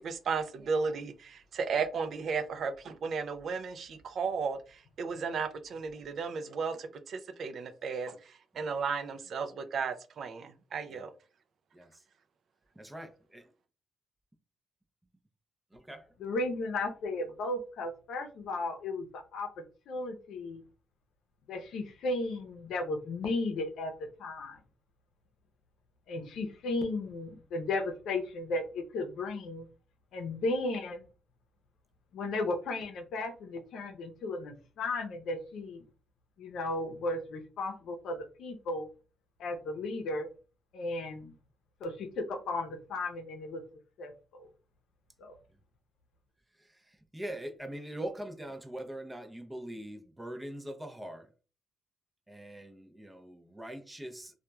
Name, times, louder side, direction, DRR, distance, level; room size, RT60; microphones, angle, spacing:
voice 1, 0.0-4.6 5.0-8.2 8.6-11.1, right 5 dB, 60° right, 0.4 m, -34 dB
voice 2, 11.7-12.0 12.7-13.5 15.7-16.1 45.5-45.6 46.6-51.3 52.3-54.3, right 1 dB, 15° right, 0.5 m, -42 dB
voice 3, 16.2-19.5 19.9-20.6 21.5-23.9 24.2-24.6 26.1-29.6 30.1-31.0 32.1-35.8 36.4-38.9 39.4-40.3 40.7-41.3 41.8-43.6 44.0-44.5 45.2-45.4, left 2 dB, 75° left, 0.6 m, -35 dB
2.9 x 2.2 x 2.2 m
cardioid pair, 90°, 0 cm